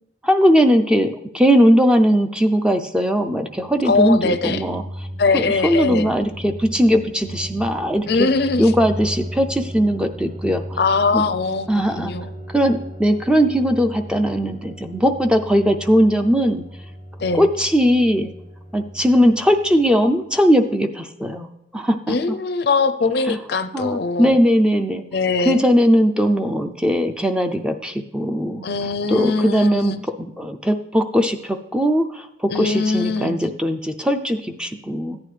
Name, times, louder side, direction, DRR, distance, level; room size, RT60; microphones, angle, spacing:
voice 1, 0.2-5.1 5.3-8.3 8.6-10.8 11.1-11.3 11.7-12.1 12.5-16.6 17.3-18.3 18.7-22.4 23.3-23.4 23.7-25.0 25.4-28.7 29.1-35.2, equal, 5° right, 6 dB, 0.4 m, -19 dB
sound 1, 3.5-20.2, equal, 40° right, 2.4 m, -36 dB
voice 2, 3.9-4.6 5.2-6.1 8.1-8.7 10.8-11.7 11.9-12.3 17.2-17.5 22.1-24.4 25.1-25.6 28.6-30.0 32.5-33.4, left 4 dB, 55° left, 11 dB, 0.5 m, -21 dB
14.5 x 9.5 x 3.3 m, 0.86 s
head